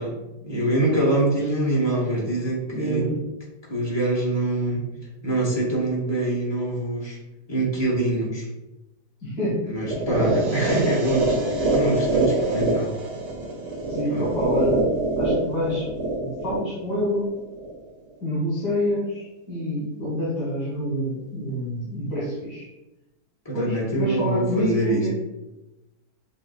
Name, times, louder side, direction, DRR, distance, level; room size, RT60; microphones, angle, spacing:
voice 1, 0.0-3.1 3.7-4.8 5.2-7.2 7.5-8.5 9.6-13.1 14.1-14.3 23.4-25.1, right 1 dB, 20° left, -4 dB, 0.8 m, -24 dB
voice 2, 2.7-3.2 9.2-10.0 13.9-14.8 15.2-15.9 16.2-17.3 18.2-22.7 23.5-25.1, equal, 75° left, -8 dB, 1.9 m, -27 dB
sound 1, 9.9-17.9, right 2 dB, 85° right, 1.4 m, -25 dB
6.2 x 2.6 x 2.3 m, 0.99 s
omnidirectional pair, 1.8 m